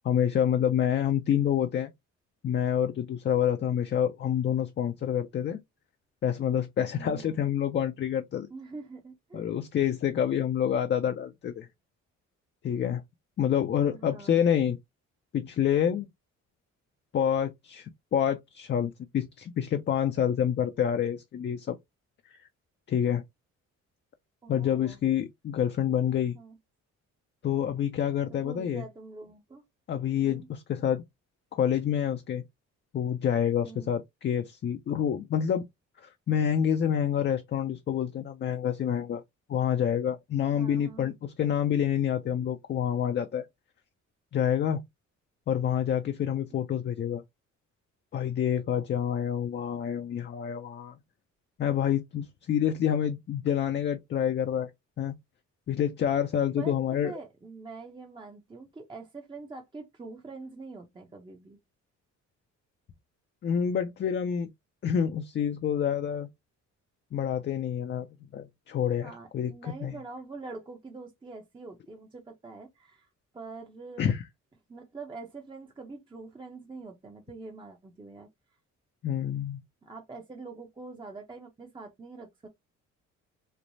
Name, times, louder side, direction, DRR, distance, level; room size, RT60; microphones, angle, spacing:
voice 1, 0.0-1.9 2.4-5.6 6.2-8.5 9.3-11.7 12.6-13.0 13.4-14.8 15.3-16.1 17.1-21.8 22.9-23.2 24.5-26.4 27.4-28.8 29.9-31.0 31.5-32.4 32.9-35.6 36.0-39.2 39.5-43.5 44.3-44.8 45.5-47.2 48.1-51.0 51.6-54.7 55.0-55.2 55.7-57.1 63.4-64.5 64.8-66.3 67.1-68.1 68.3-69.9 74.0-74.2 79.0-79.6, left 9 dB, 40° left, 0.4 m, -27 dB
voice 2, 6.9-7.4 8.5-9.5 13.9-14.5 24.4-25.0 26.3-26.6 28.3-29.6 30.2-30.5 33.6-33.9 40.5-41.1 56.6-61.6 69.0-73.1 73.3-74.1 74.7-78.3 79.8-82.5, right 3 dB, 15° right, 0.6 m, -44 dB
3.1 x 2.1 x 2.6 m
cardioid pair, 90°, 30 cm